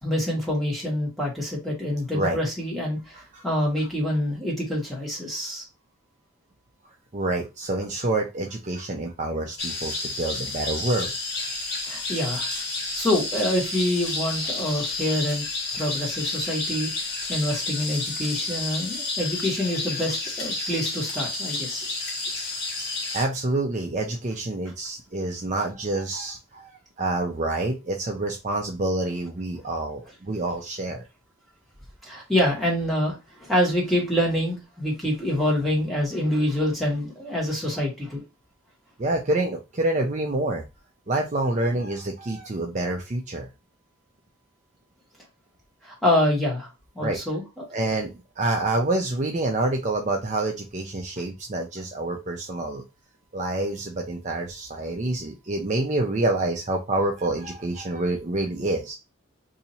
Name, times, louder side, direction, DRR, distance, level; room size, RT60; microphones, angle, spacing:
voice 1, 0.0-5.6 11.9-12.5 12.9-15.4 15.7-21.9 32.0-38.2 45.8-46.7 46.9-47.6, left 1 dB, ahead, 1.3 m, -26 dB
voice 2, 7.1-11.1 23.1-26.7 27.0-31.0 39.0-40.6 41.1-43.5 47.0-47.2 47.7-52.8 53.3-58.9, right 2 dB, 35° right, 0.5 m, -27 dB
sound 1, 9.6-23.2, left 3 dB, 55° left, 1.2 m, -30 dB
2.8 x 2.7 x 4.1 m
head